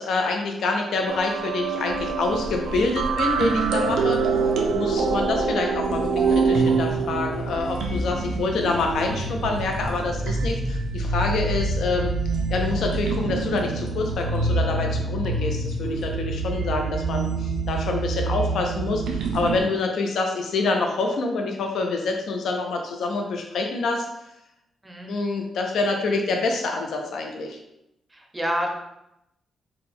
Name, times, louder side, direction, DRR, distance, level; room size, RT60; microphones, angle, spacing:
voice 1, 0.0-4.2 4.7-12.1 12.5-24.1 25.1-27.6, left 3 dB, 70° left, 2 dB, 0.4 m, -26 dB
sound 1, 1.1-19.6, right 3 dB, 90° right, 0.4 m, -25 dB
voice 2, 28.1-28.7, equal, 10° right, 1 dB, 0.6 m, -28 dB
3.7 x 2.1 x 4.1 m, 0.85 s
wide cardioid pair, 150°, 0 cm